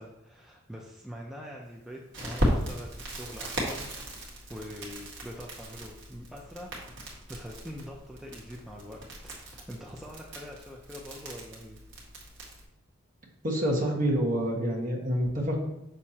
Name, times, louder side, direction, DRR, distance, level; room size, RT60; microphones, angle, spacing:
voice 1, 0.0-6.7 7.3-11.8, equal, ahead, -2 dB, 0.5 m, -44 dB
Crackle, 2.1-12.7, equal, 55° right, 1.8 m, -36 dB
voice 2, 13.4-15.6, equal, 40° right, -2 dB, 1.4 m, -27 dB
6.5 x 6.3 x 2.9 m, 0.89 s
head